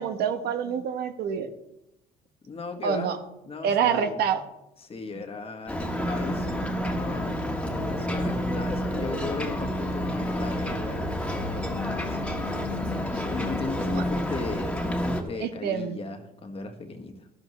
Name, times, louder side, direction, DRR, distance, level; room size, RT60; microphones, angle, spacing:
voice 1, 0.0-1.5 2.8-3.2 3.6-4.4 13.9-14.0 15.4-16.0, right 7 dB, 70° right, 8 dB, 1.1 m, -26 dB
voice 2, 2.4-3.1 3.4-4.2 4.8-7.3 7.8-12.3 13.1-17.3, left 3 dB, 35° left, 6 dB, 1.5 m, -37 dB
Ocean, 5.7-15.2, equal, 5° left, 1.6 m, -29 dB
13.0 x 11.5 x 3.2 m, 0.88 s
cardioid pair, 110°, 17 cm